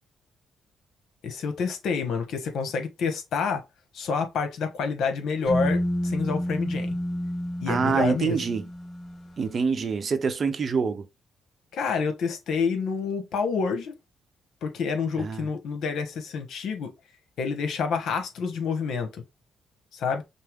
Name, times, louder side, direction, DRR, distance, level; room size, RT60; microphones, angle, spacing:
voice 1, 1.2-3.6 3.9-7.0 7.6-8.4 11.7-13.9 14.6-16.9 17.4-19.2 19.9-20.2, left 5 dB, 70° left, 1.1 m, -28 dB
sound 1, 5.5-9.3, equal, 25° left, 2.1 m, -30 dB
voice 2, 7.7-8.7 9.4-11.1 15.2-15.5, right 5 dB, 45° right, 0.7 m, -26 dB
5.5 x 2.1 x 3.5 m
cardioid pair, 90°, 0 cm